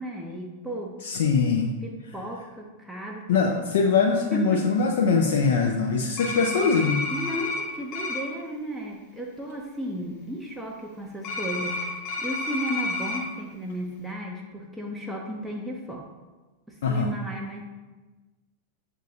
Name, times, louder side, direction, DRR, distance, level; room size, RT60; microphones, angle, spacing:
voice 1, 0.0-1.0 1.8-3.5 4.3-4.7 7.1-16.1 16.7-17.6, equal, 5° right, -1 dB, 0.5 m, -34 dB
voice 2, 1.0-1.7 3.3-7.0 16.8-17.1, left 5 dB, 60° left, 1 dB, 0.4 m, -22 dB
sound 1, 6.2-7.6 7.9-8.2 11.2-13.2, left 3 dB, 40° left, 0.9 m, -30 dB
7.0 x 2.6 x 2.7 m, 1.2 s
figure-of-eight pair, 90°, 0 cm